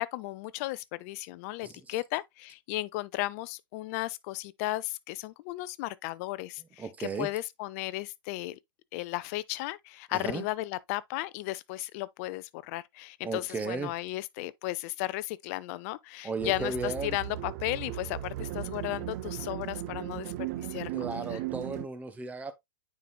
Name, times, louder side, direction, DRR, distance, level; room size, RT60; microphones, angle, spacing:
voice 1, 0.0-8.6 8.9-21.4, left 18 dB, 40° left, 0.5 m, -35 dB
voice 2, 1.6-2.0 6.8-7.3 10.1-10.4 13.2-13.9 16.2-17.2 20.9-22.5, right 4 dB, 10° right, 1.0 m, -35 dB
sound 1, 16.4-21.9, right 14 dB, 45° right, 0.6 m, -37 dB
9.2 x 4.7 x 2.3 m
hypercardioid pair, 110°, 12 cm